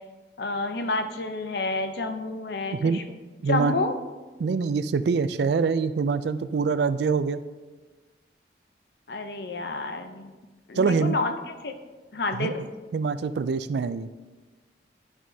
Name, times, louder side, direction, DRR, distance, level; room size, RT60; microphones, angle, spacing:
voice 1, 0.4-3.0 3.5-4.0 9.1-10.4 10.7-11.3 11.6-11.7 12.1-12.6, left 2 dB, 60° left, 7 dB, 0.6 m, -29 dB
voice 2, 2.7-3.0 3.4-3.8 4.4-7.4 10.8-11.2 12.3-12.6 12.9-14.1, right 5 dB, 65° right, 13 dB, 0.3 m, -25 dB
11.0 x 6.1 x 2.7 m, 1.3 s
head